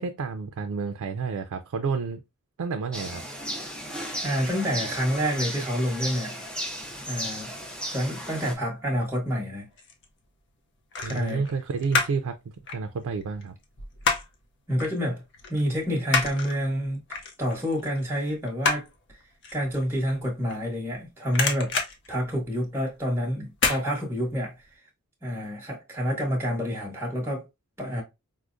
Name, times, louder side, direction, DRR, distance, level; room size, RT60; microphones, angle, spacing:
voice 1, 0.0-2.2 2.6-3.2 11.0-12.3 12.7-13.6, right 5 dB, 85° right, 0.4 m, -30 dB
sound 1, 2.9-8.6, equal, 5° left, 0.4 m, -35 dB
voice 2, 4.2-6.4 7.1-7.5 7.9-9.7 11.0-11.4 14.7-15.2 15.5-17.0 17.4-19.2 19.5-21.8 22.1-24.6 25.2-27.5 27.8-28.0, equal, 10° right, 1.0 m, -28 dB
sound 2, 9.4-10.1 10.9-12.3 12.6-14.4 14.8-15.0 15.3-21.0 21.2-22.9 23.5-23.8 24.2-24.3, left 4 dB, 55° left, 0.6 m, -29 dB
4.6 x 2.1 x 2.5 m
head